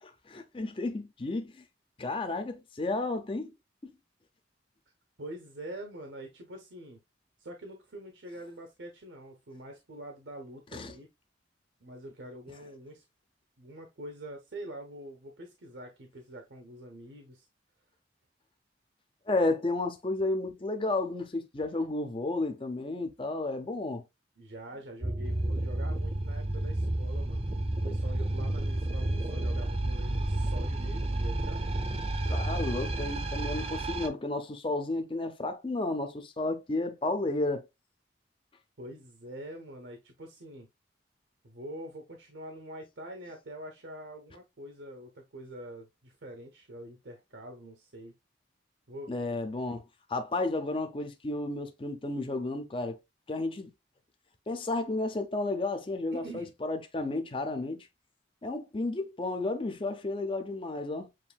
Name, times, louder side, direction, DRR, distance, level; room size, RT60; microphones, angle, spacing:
voice 1, 0.0-1.6 2.0-3.5 3.8-3.9 10.7-10.9 19.3-24.0 32.3-37.6 49.1-49.8 50.1-53.0 53.3-53.7 54.5-57.9 58.4-61.1, left 2 dB, 30° left, 0.6 m, -32 dB
voice 2, 5.2-7.0 7.4-11.1 11.8-13.0 13.6-17.5 24.4-27.4 27.8-31.7 38.8-40.7 41.4-48.1 48.9-49.3 56.1-56.5, right 1 dB, 75° right, 0.9 m, -45 dB
sound 1, 25.0-34.1, right 1 dB, 35° right, 0.7 m, -31 dB
7.5 x 2.6 x 2.3 m
head